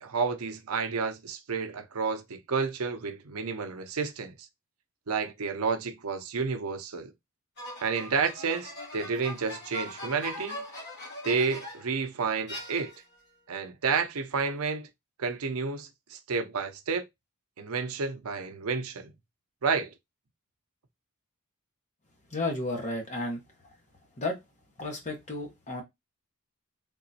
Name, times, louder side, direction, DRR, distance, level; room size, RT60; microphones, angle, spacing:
voice 1, 0.0-4.3 5.1-7.1 7.8-10.6 11.2-12.9 13.5-14.9 15.2-17.0 17.6-19.1 19.6-19.9, right 5 dB, 75° right, 0.6 m, -30 dB
sound 1, 7.6-12.0 12.5-13.2, left 1 dB, 50° left, 1.5 m, -41 dB
voice 2, 22.3-23.4 24.2-24.4 24.8-25.8, left 2 dB, 35° left, 1.2 m, -32 dB
3.7 x 2.9 x 2.7 m
head